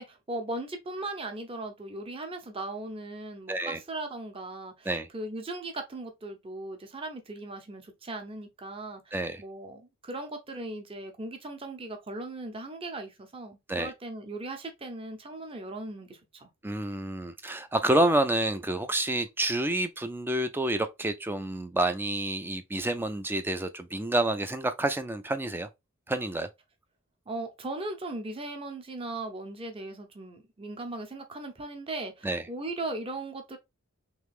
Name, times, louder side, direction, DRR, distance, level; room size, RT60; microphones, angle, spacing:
voice 1, 0.0-16.5 27.3-33.6, right 2 dB, 25° right, 0.8 m, -38 dB
voice 2, 3.5-3.8 4.9-5.1 9.1-9.4 13.7-13.9 16.6-25.7 26.1-26.5 32.2-32.4, right 1 dB, 10° right, 0.3 m, -28 dB
3.3 x 3.1 x 3.4 m
head